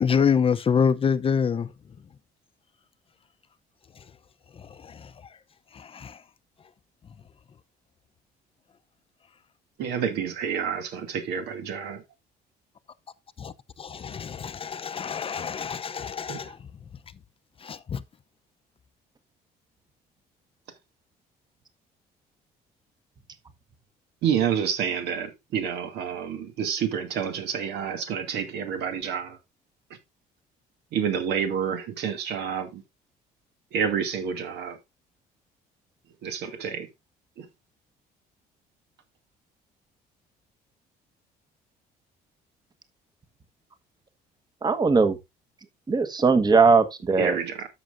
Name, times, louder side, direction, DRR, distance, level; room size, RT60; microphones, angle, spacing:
voice 1, 0.0-1.7 4.6-5.1 5.7-6.2 13.4-13.5 13.8-16.6 17.6-18.0, left 7 dB, 35° left, 0.7 m, -26 dB
voice 2, 9.8-12.0 16.3-16.4 24.2-29.4 30.9-32.8 33.7-34.8 36.2-36.9 37.4-37.5 47.2-47.7, right 7 dB, 80° right, 2.4 m, -28 dB
voice 3, 44.6-45.2 45.9-47.4, right 4 dB, 25° right, 1.2 m, -19 dB
13.0 x 6.1 x 2.6 m
cardioid pair, 110°, 17 cm